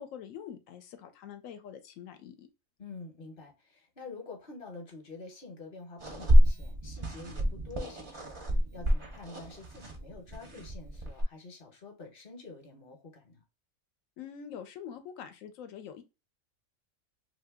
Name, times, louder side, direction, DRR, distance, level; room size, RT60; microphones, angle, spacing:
voice 1, 0.0-2.5 14.2-16.0, left 8 dB, 80° left, 1.0 m, -45 dB
voice 2, 2.8-13.4, left 3 dB, 45° left, 1.0 m, -47 dB
sound 1, 6.0-11.2, equal, 40° right, 0.4 m, -27 dB
2.8 x 2.5 x 3.4 m
omnidirectional pair, 1.4 m